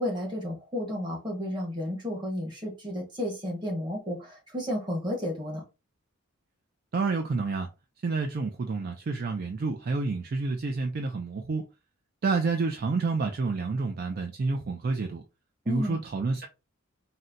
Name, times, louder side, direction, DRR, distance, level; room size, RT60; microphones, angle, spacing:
voice 1, 0.0-5.6 15.6-16.0, left 1 dB, 20° right, 1.1 m, -32 dB
voice 2, 6.9-7.7 8.0-11.7 12.2-15.2 15.7-16.5, right 4 dB, 45° right, 0.3 m, -29 dB
4.1 x 2.1 x 2.5 m
head